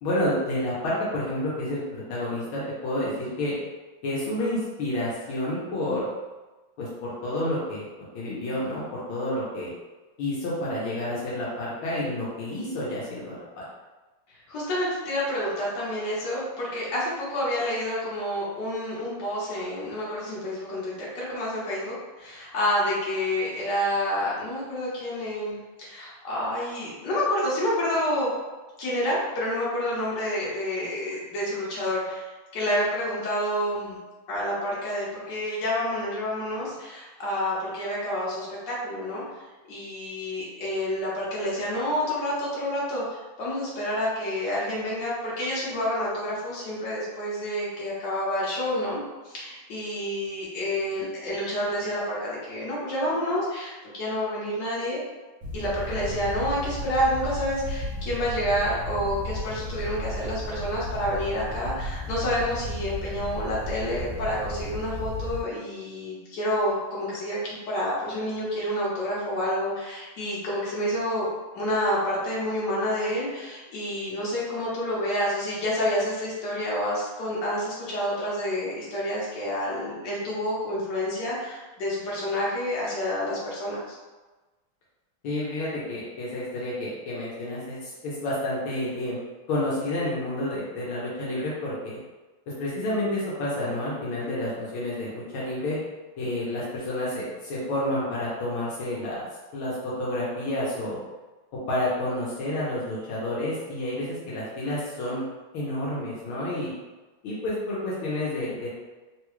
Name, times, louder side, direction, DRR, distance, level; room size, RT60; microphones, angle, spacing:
voice 1, 0.0-3.6 4.0-6.1 6.8-7.8 8.1-9.7 10.2-13.6 85.2-89.2 89.5-92.0 92.6-95.8 96.2-99.3 99.5-101.0 101.7-105.2 105.5-106.7 107.2-108.7, left 1 dB, 80° left, -7 dB, 1.6 m, -29 dB
voice 2, 14.5-28.3 28.8-34.0 34.3-39.2 39.7-55.0 55.5-71.3 71.5-83.9, equal, 60° left, -7 dB, 1.6 m, -29 dB
sound 1, 55.4-65.4, left 1 dB, 65° right, 1.0 m, -34 dB
3.9 x 2.3 x 3.0 m, 1.2 s
omnidirectional pair, 2.3 m